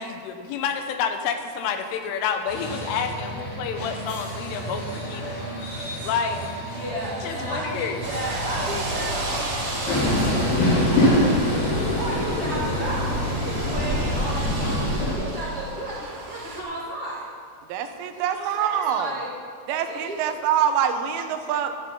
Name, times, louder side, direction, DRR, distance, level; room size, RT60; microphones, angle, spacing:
voice 1, 0.0-5.4 6.0-6.4 7.2-8.0, left 7 dB, 85° left, 7 dB, 3.5 m, -29 dB
sound 1, 2.5-11.0, right 1 dB, 30° left, 3.8 m, -34 dB
voice 2, 6.6-17.2 18.1-19.3 19.8-20.3 21.1-21.2, right 1 dB, 55° right, -7 dB, 1.6 m, -34 dB
sound 2, 8.0-16.6, right 1 dB, 40° right, 1.6 m, -34 dB
Train, 9.9-15.1, left 1 dB, 50° left, 5.0 m, -23 dB
voice 3, 17.7-19.2 19.7-21.8, right 9 dB, 80° right, 7 dB, 3.3 m, -25 dB
13.5 x 11.5 x 5.6 m, 2.3 s
omnidirectional pair, 5.6 m